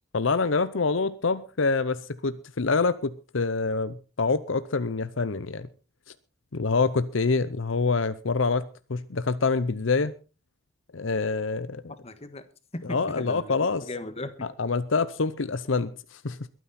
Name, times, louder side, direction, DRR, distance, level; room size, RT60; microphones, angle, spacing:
voice 1, 0.1-5.7 6.5-10.1 10.9-11.8 12.9-13.8 14.6-16.5, left 4 dB, 75° left, 0.8 m, -26 dB
voice 2, 11.9-12.5 12.7-14.5, left 2 dB, 30° left, 1.5 m, -38 dB
22.0 x 9.3 x 4.2 m
head